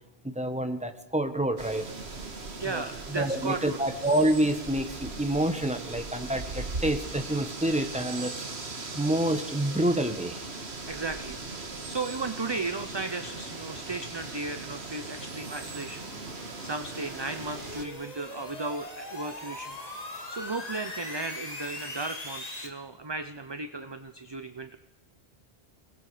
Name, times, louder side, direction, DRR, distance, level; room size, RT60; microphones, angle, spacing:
voice 1, 0.2-1.9 2.6-8.4 8.9-10.5, right 1 dB, 5° right, 7 dB, 1.6 m, -28 dB
sound 1, 1.6-17.8, right 3 dB, 75° right, 2.1 m, -39 dB
voice 2, 2.6-3.8 10.9-19.8 20.3-24.8, right 3 dB, 25° right, 9 dB, 0.8 m, -35 dB
sound 2, 11.9-22.7, left 2 dB, 35° left, 2.4 m, -43 dB
28.5 x 20.0 x 5.1 m, 0.97 s
omnidirectional pair, 1.1 m